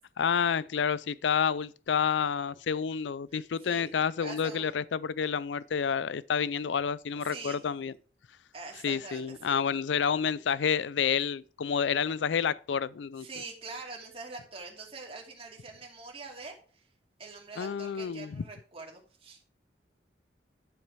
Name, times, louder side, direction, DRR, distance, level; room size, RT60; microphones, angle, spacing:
voice 1, 0.2-7.9 8.8-13.3 17.6-18.4, left 7 dB, 85° left, 0.4 m, -29 dB
voice 2, 3.6-4.8 7.2-7.7 8.5-9.6 13.2-16.6 17.2-19.4, right 3 dB, 30° right, 2.6 m, -44 dB
11.0 x 7.3 x 4.7 m
head